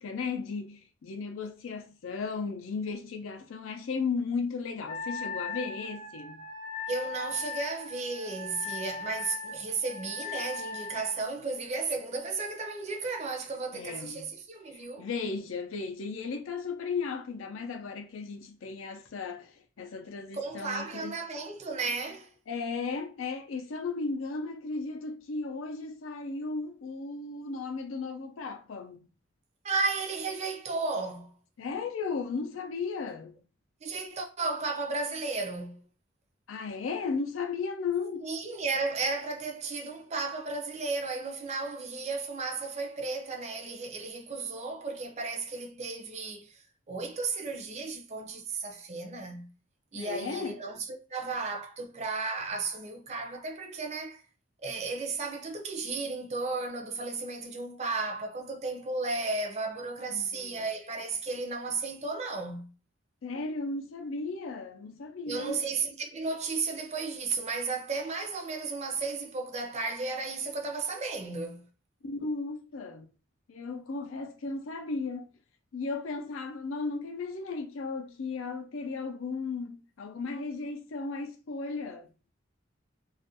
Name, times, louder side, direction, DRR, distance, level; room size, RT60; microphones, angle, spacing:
voice 1, 0.0-6.4 13.7-14.3 14.7-21.2 22.5-29.1 31.6-33.3 36.5-38.3 49.9-50.6 60.1-60.7 63.2-65.6 72.0-73.1 73.5-75.3 75.7-82.1, left 4 dB, 85° left, 0.5 m, -35 dB
Wind instrument woodwind instrument, 4.9-11.2, left 4 dB, 25° left, 0.4 m, -39 dB
voice 2, 6.9-15.1 20.3-22.3 29.6-31.4 33.8-35.8 38.2-49.5 49.9-54.2 54.6-62.7 65.3-71.7, right 3 dB, 35° right, 0.5 m, -34 dB
2.4 x 2.1 x 2.7 m
head